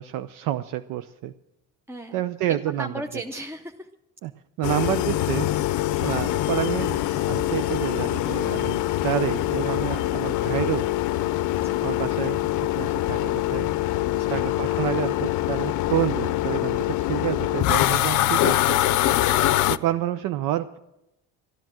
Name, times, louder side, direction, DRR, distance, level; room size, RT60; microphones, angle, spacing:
voice 1, 0.0-1.3 2.1-2.9 4.2-4.3 4.6-5.5 6.0-10.9 11.8-13.7 14.3-18.8 19.7-20.8, right 13 dB, 75° right, 11 dB, 0.6 m, -29 dB
voice 2, 1.9-2.2 2.5-3.9 5.6-5.7 6.8-6.9 7.3-7.7 11.6-11.8 14.1-14.4 19.0-19.7, right 1 dB, 5° right, 5 dB, 0.6 m, -38 dB
sound 1, 4.6-19.8, left 15 dB, 65° left, 0.6 m, -24 dB
13.5 x 10.5 x 7.4 m, 0.91 s
cardioid pair, 105°, 32 cm